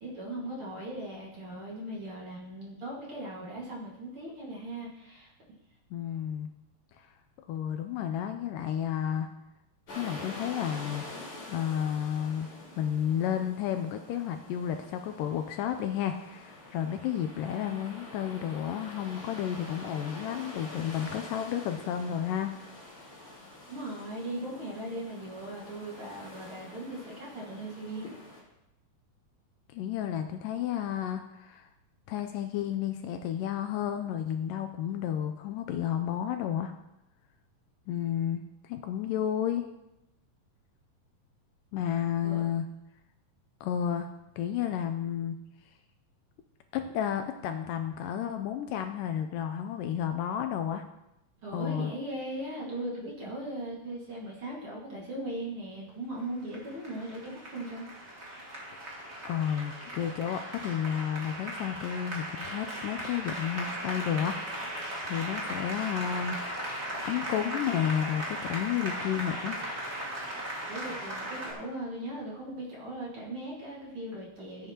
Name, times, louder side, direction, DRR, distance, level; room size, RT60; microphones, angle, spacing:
voice 1, 0.0-5.3 23.7-28.1 42.2-42.4 51.4-57.8 70.7-74.7, right 1 dB, 45° right, -4 dB, 2.4 m, -38 dB
voice 2, 5.9-6.5 7.0-7.1 7.5-9.3 10.0-12.5 12.8-22.5 29.7-31.7 32.1-36.7 37.9-39.7 41.7-42.7 43.6-44.1 44.4-45.4 46.7-50.8 51.5-51.9 59.3-66.7 67.0-69.6, left 9 dB, 80° left, 6 dB, 2.1 m, -32 dB
sound 1, 9.9-28.4, left 2 dB, 40° left, 4.5 m, -46 dB
Applause, 56.2-71.5, right 1 dB, 25° right, 1.5 m, -37 dB
15.5 x 8.3 x 2.9 m, 0.88 s
omnidirectional pair, 4.1 m